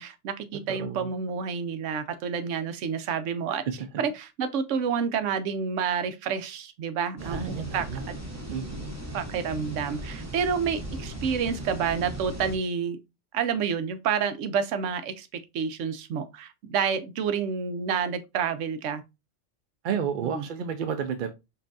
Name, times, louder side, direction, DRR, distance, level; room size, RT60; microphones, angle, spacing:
voice 1, 0.0-3.6 4.0-7.9 9.1-13.0 13.3-19.0 20.2-20.5, right 6 dB, 80° right, 1.0 m, -29 dB
voice 2, 0.7-1.1 7.2-8.1 8.5-8.9 19.8-21.3, right 7 dB, 60° right, 0.5 m, -31 dB
sound 1, 7.2-12.6, right 1 dB, 15° right, 0.8 m, -37 dB
5.4 x 2.6 x 2.5 m
omnidirectional pair, 1.2 m